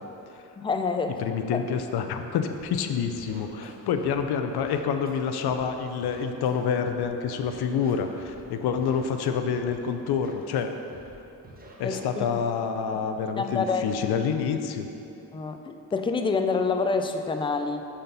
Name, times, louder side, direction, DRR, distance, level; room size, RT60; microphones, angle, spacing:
voice 1, 0.6-1.2 1.5-1.6 11.8-12.3 13.4-13.9 15.3-17.8, left 4 dB, 15° left, 7 dB, 0.3 m, -27 dB
voice 2, 1.2-10.7 11.8-14.9, left 6 dB, 75° left, 7 dB, 0.6 m, -27 dB
Scratching (performance technique), 2.5-2.8 3.1-4.2 4.5-5.6 6.0-7.1 7.4-8.4 8.7-9.8 10.0-10.6 10.9-11.1 11.4-12.3, right 2 dB, 25° right, 1.0 m, -48 dB
5.7 x 4.2 x 5.2 m, 2.9 s
cardioid pair, 70°, 39 cm